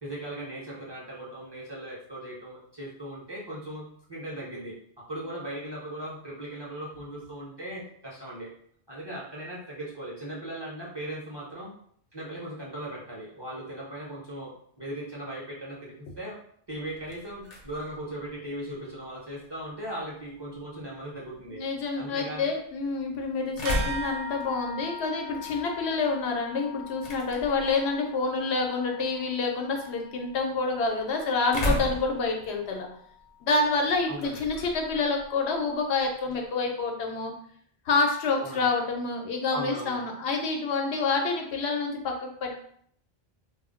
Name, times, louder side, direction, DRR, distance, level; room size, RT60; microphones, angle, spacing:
voice 1, 0.0-8.5 8.9-11.7 12.1-16.4 16.7-21.6 22.0-22.5 34.1-34.5 38.3-38.7 39.5-40.0, right 1 dB, 30° right, -6 dB, 0.6 m, -38 dB
sound 1, 16.7-36.5, equal, 50° left, 0.6 m, -39 dB
voice 2, 21.5-32.9 33.4-37.3 37.9-42.5, left 3 dB, 90° left, 2 dB, 0.9 m, -28 dB
sound 2, 23.6-33.5, left 3 dB, 70° right, 0.7 m, -41 dB
2.2 x 2.1 x 3.6 m, 0.63 s
omnidirectional pair, 1.1 m